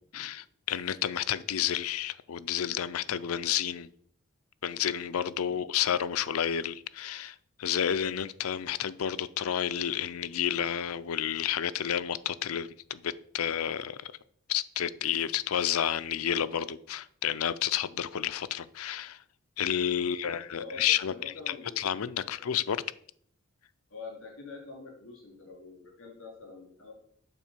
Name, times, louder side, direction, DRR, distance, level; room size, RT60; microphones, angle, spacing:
voice 1, 0.1-3.9 4.6-14.1 14.5-19.2 19.6-21.1 21.5-22.8, left 9 dB, 80° left, 15 dB, 0.5 m, -30 dB
voice 2, 20.0-21.9 22.2-22.5 23.9-26.9, left 4 dB, 60° left, -2 dB, 3.3 m, -46 dB
8.9 x 4.4 x 7.2 m, 0.64 s
head